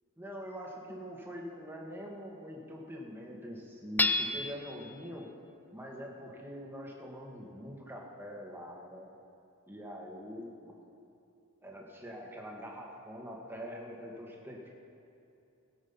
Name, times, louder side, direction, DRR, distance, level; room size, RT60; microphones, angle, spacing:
voice 1, 0.2-5.3 5.7-9.1 9.7-10.7 11.6-14.7, equal, 10° right, -2 dB, 1.8 m, -44 dB
Hammer / Chink clink, 4.0-4.8, left 2 dB, 10° left, 0.4 m, -29 dB
19.0 x 7.9 x 5.6 m, 2.7 s
head